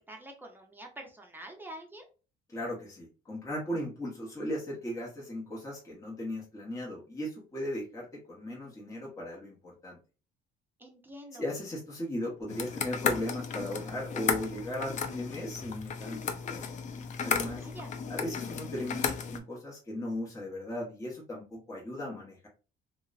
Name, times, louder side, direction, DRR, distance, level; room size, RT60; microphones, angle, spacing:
voice 1, 0.1-2.1 10.8-11.4 17.5-17.9, right 1 dB, 10° right, 1 dB, 0.6 m, -46 dB
voice 2, 2.5-10.0 11.4-16.6 17.2-17.7 18.1-22.5, left 1 dB, 20° left, -4 dB, 0.8 m, -37 dB
sound 1, 12.5-19.4, left 6 dB, 45° left, 0.4 m, -34 dB
2.9 x 2.0 x 2.3 m, 0.34 s
cardioid pair, 110°, 17 cm